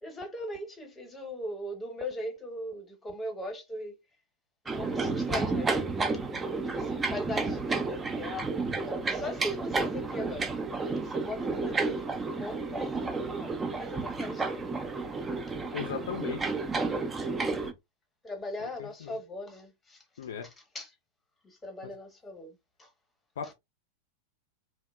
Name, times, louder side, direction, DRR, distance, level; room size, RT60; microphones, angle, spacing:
voice 1, 0.0-3.9 4.7-5.8 6.8-8.6 8.8-10.5 10.9-14.7 14.9-15.1 18.2-20.0 20.4-20.9 21.4-22.9 23.4-23.5, left 1 dB, 15° left, 0.9 m, -39 dB
sound 1, 4.7-17.7, right 3 dB, 15° right, 0.4 m, -31 dB
voice 2, 15.7-16.4 18.6-19.2 20.2-20.5 21.8-21.9 23.4-23.5, left 8 dB, 60° left, 0.4 m, -37 dB
2.8 x 2.1 x 2.2 m
figure-of-eight pair, 90°, 0 cm